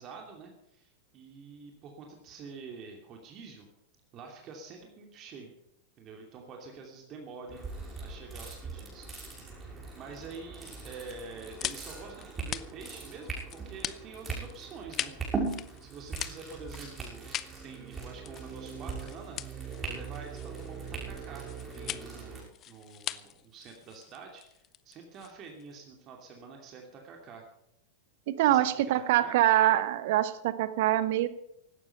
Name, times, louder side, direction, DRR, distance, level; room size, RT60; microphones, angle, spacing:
voice 1, 0.0-3.7 4.1-5.5 6.0-7.6 8.0-9.1 9.9-17.3 17.6-27.4 28.4-29.4, right 4 dB, 35° right, 2 dB, 2.7 m, -47 dB
sound 1, 7.5-22.4, right 4 dB, 15° right, 6.4 m, -40 dB
sound 2, 11.0-25.7, left 12 dB, 30° left, 0.7 m, -42 dB
voice 2, 28.3-31.3, right 13 dB, 50° right, 14 dB, 1.1 m, -24 dB
16.5 x 12.5 x 5.6 m, 0.78 s
figure-of-eight pair, 90°, 0 cm